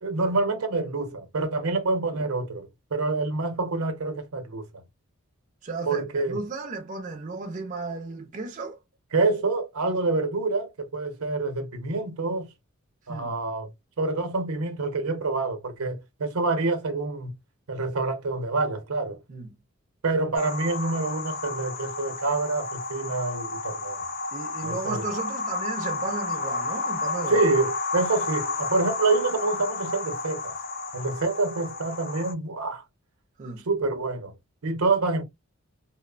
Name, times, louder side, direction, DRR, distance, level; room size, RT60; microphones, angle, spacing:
voice 1, 0.0-4.7 5.9-6.4 9.1-12.5 13.1-13.7 14.0-17.3 17.7-19.2 20.0-24.0 24.6-25.0 27.3-30.5 30.9-32.8 33.6-34.3 34.6-35.2, right 3 dB, 85° right, 0.7 m, -27 dB
voice 2, 5.6-8.8 13.1-13.3 19.3-19.5 24.3-27.4 33.4-33.6, right 3 dB, 35° right, 0.4 m, -34 dB
sound 1, 20.3-32.3, left 3 dB, 40° left, 0.4 m, -32 dB
2.8 x 2.0 x 2.3 m
head